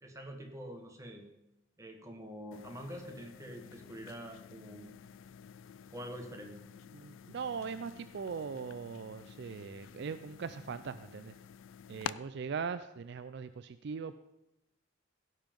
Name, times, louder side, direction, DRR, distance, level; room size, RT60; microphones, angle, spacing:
voice 1, 0.0-1.3 1.8-5.0 5.9-6.6, equal, 15° right, 3 dB, 1.4 m, -46 dB
sound 1, 2.5-12.1, left 8 dB, 75° left, 0.3 m, -49 dB
voice 2, 6.9-11.3 11.9-14.2, right 5 dB, 55° right, 12 dB, 0.4 m, -40 dB
16.5 x 5.7 x 5.2 m, 0.92 s
head